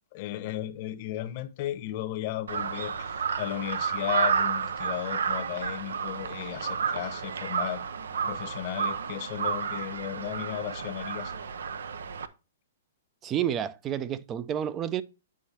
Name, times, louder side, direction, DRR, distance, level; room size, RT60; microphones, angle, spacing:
voice 1, 0.1-7.8 8.3-11.3, left 14 dB, 40° left, 0.8 m, -35 dB
Crow, 2.5-12.3, right 6 dB, 85° right, 0.6 m, -31 dB
voice 2, 13.2-15.0, right 10 dB, 20° right, 0.4 m, -30 dB
8.3 x 5.2 x 2.8 m
hypercardioid pair, 150°, 0 cm